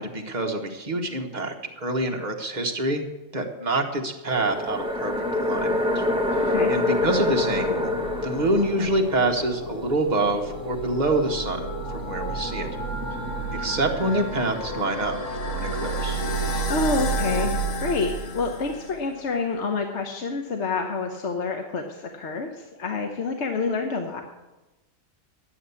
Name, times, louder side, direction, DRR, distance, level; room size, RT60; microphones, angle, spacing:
voice 1, 0.0-3.0 3.3-5.1 5.4-6.0 6.7-7.9 8.2-12.7 13.5-16.2, right 2 dB, 35° right, 2 dB, 1.4 m, -26 dB
sound 1, 4.3-9.4 11.5-14.9, left 2 dB, 5° right, 1.0 m, -28 dB
sound 2, 4.9-19.1, right 2 dB, 90° left, 1.6 m, -31 dB
voice 2, 6.3-6.7 16.7-24.2, left 4 dB, 65° left, 4 dB, 1.2 m, -28 dB
11.5 x 8.0 x 7.0 m, 1.1 s
omnidirectional pair, 1.3 m